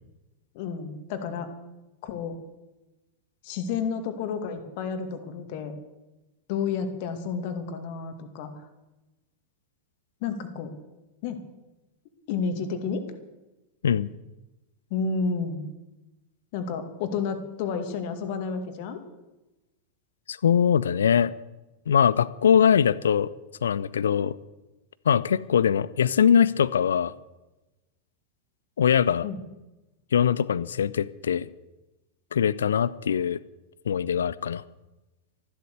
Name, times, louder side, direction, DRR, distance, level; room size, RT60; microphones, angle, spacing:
voice 1, 0.5-1.5 2.0-2.4 3.4-5.7 6.5-8.7 10.2-10.7 11.2-11.4 12.3-13.0 14.9-15.6 16.5-19.0 29.2-29.4, left 5 dB, 50° left, 7 dB, 2.1 m, -31 dB
voice 2, 20.3-21.3 21.9-23.3 23.6-24.3 25.1-27.1 28.8-29.2 30.1-31.5 32.3-33.4 33.9-34.6, left 8 dB, 65° left, 19 dB, 0.6 m, -22 dB
14.0 x 12.0 x 6.7 m, 1.0 s
figure-of-eight pair, 90°, 0 cm